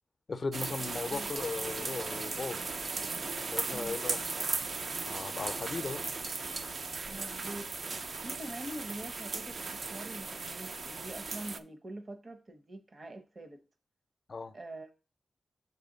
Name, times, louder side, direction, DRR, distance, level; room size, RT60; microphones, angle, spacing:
voice 1, 0.3-2.7 3.5-4.2 5.1-6.0 14.3-14.6, left 4 dB, 50° left, 0.5 m, -37 dB
sound 1, 0.5-11.6, right 4 dB, 65° right, 0.4 m, -37 dB
voice 2, 7.1-7.7 8.2-13.6 14.5-14.9, right 1 dB, 45° right, 0.8 m, -44 dB
7.0 x 4.2 x 3.9 m
cardioid pair, 75°, 0 cm